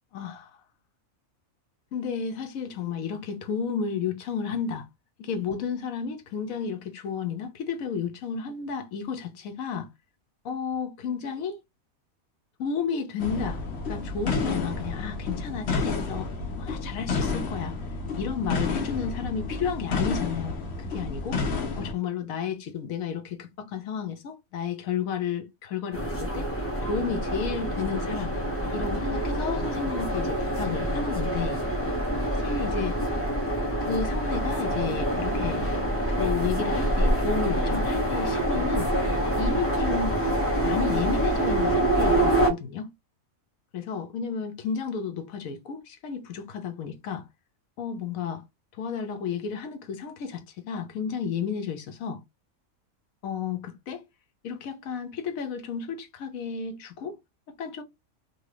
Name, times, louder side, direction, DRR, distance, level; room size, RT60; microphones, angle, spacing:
voice 1, 0.1-0.5 1.9-4.9 5.2-9.9 10.4-11.6 12.6-13.6 13.9-16.3 16.6-17.7 18.2-20.6 20.9-21.4 21.8-26.5 26.9-28.3 28.7-31.6 32.3-33.0 33.9-35.7 36.2-38.9 39.4-40.2 40.6-42.9 43.7-47.2 47.8-48.4 48.8-52.2 53.2-54.0 54.4-57.2 57.6-57.8, left 6 dB, 80° left, 1.1 m, -32 dB
sound 1, 13.2-21.9, left 4 dB, 55° left, 1.0 m, -30 dB
sound 2, 25.9-42.5, right 1 dB, 15° left, 0.5 m, -26 dB
2.7 x 2.6 x 3.2 m
omnidirectional pair, 1.5 m